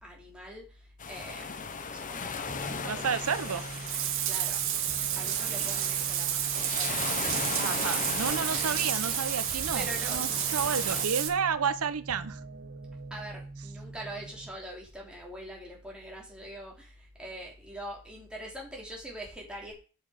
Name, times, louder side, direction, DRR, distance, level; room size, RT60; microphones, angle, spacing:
voice 1, 0.0-0.6 1.1-1.5 1.9-3.6 4.3-4.6 5.1-7.5 8.5-8.7 9.7-10.2 13.1-19.7, right 1 dB, 5° right, -3 dB, 3.2 m, -43 dB
sound 1, 1.0-11.1, left 5 dB, 40° left, 0.8 m, -38 dB
sound 2, 2.5-14.5, right 2 dB, 40° right, 1.0 m, -44 dB
voice 2, 2.8-3.6 7.6-12.4, right 6 dB, 85° right, 13 dB, 0.8 m, -31 dB
Bathtub (filling or washing), 3.2-11.3, right 11 dB, 65° right, 1.3 m, -31 dB
7.9 x 7.5 x 5.0 m, 0.36 s
head